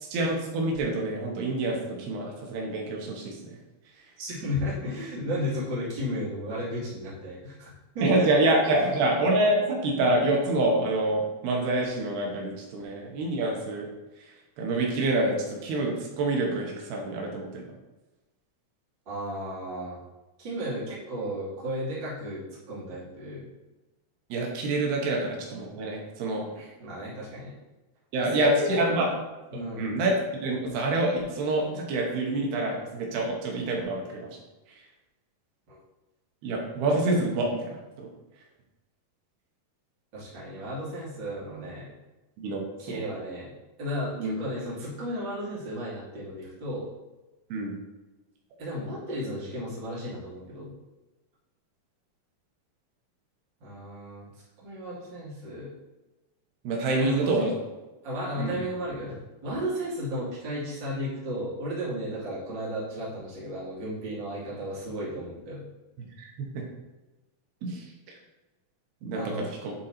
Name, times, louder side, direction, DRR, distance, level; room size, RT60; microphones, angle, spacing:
voice 1, 0.1-3.6 8.0-13.9 14.6-17.6 24.3-26.5 28.1-29.1 29.8-34.2 36.4-38.1 42.4-43.0 44.2-44.4 47.5-47.8 56.6-57.5 58.4-58.6 66.0-66.3 67.6-68.2 69.0-69.7, right 2 dB, 85° right, 0 dB, 3.2 m, -27 dB
voice 2, 4.2-8.3 19.1-20.0 20.4-23.5 26.5-27.6 28.3-29.1 29.5-29.9 35.7-35.8 40.1-41.9 42.8-43.5 43.8-46.9 48.6-50.7 53.6-54.3 54.6-55.7 57.0-57.5 58.0-65.6 69.1-69.5, equal, 35° right, -8 dB, 2.7 m, -34 dB
9.3 x 3.9 x 4.3 m, 1.1 s
omnidirectional pair, 4.4 m